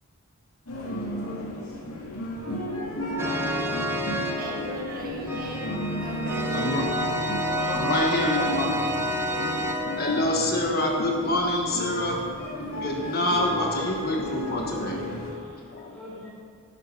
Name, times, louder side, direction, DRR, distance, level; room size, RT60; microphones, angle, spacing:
sound 1, 0.7-15.3, equal, 75° left, 2.7 m, -34 dB
sound 2, 3.2-10.4, equal, 10° right, 0.7 m, -29 dB
voice 1, 4.4-6.9, right 2 dB, 40° right, -1 dB, 1.5 m, -39 dB
voice 2, 6.5-6.9 7.7-8.8 9.3-9.4 10.0-12.3 12.8-15.0 15.7-16.0, left 1 dB, 45° left, 0 dB, 1.2 m, -26 dB
voice 3, 7.5-8.8 12.6-13.0 13.3-13.5 15.0-16.3, equal, 5° left, -5 dB, 3.2 m, -41 dB
12.0 x 10.5 x 5.4 m, 2.1 s
head